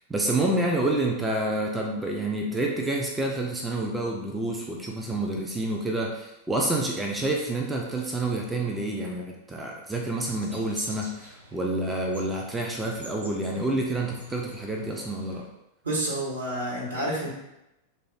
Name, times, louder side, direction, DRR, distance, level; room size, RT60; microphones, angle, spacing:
voice 1, 0.1-15.5, right 2 dB, 10° right, 0 dB, 0.4 m, -28 dB
sound 1, 10.2-15.4, equal, 90° right, 0.6 m, -47 dB
voice 2, 15.8-17.3, right 1 dB, 70° right, -3 dB, 1.0 m, -29 dB
3.1 x 2.0 x 3.8 m, 0.89 s
figure-of-eight pair, 90°, 0 cm